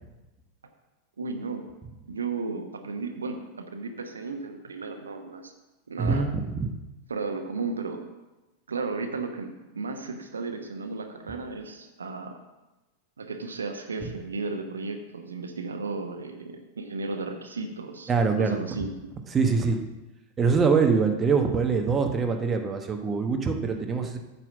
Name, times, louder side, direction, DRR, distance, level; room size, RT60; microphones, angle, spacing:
voice 1, 1.2-1.6 2.1-5.5 5.9-6.3 7.1-8.0 8.7-12.4 13.2-18.1 18.4-18.9, right 3 dB, 70° right, 5 dB, 1.0 m, -34 dB
voice 2, 6.0-6.7 14.0-14.1 18.1-18.6 19.3-19.8 20.4-24.2, right 5 dB, 20° right, 4 dB, 1.1 m, -24 dB
9.0 x 5.8 x 7.2 m, 1.0 s
figure-of-eight pair, 90°, 0 cm